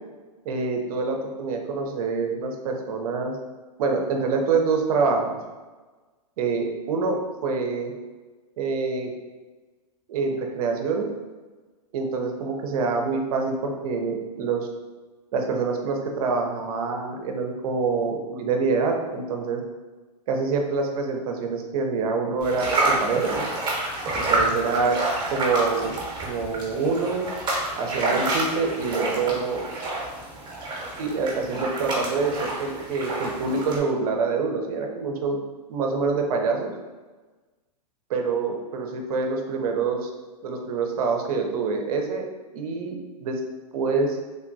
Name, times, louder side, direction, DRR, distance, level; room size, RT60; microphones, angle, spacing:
voice 1, 0.4-3.4 3.8-5.4 6.4-7.9 8.6-9.1 10.1-11.1 11.9-14.7 15.3-19.6 20.3-23.5 24.1-25.0 25.3-26.0 26.2-27.3 27.8-29.6 31.0-35.4 35.7-36.7 38.1-40.1 40.4-42.3 42.5-43.4 43.7-44.2, right 4 dB, 60° right, 3 dB, 0.6 m, -26 dB
sound 1, 22.4-33.8, right 2 dB, 20° right, 0.9 m, -28 dB
3.3 x 2.1 x 2.6 m, 1.3 s
hypercardioid pair, 120°, 21 cm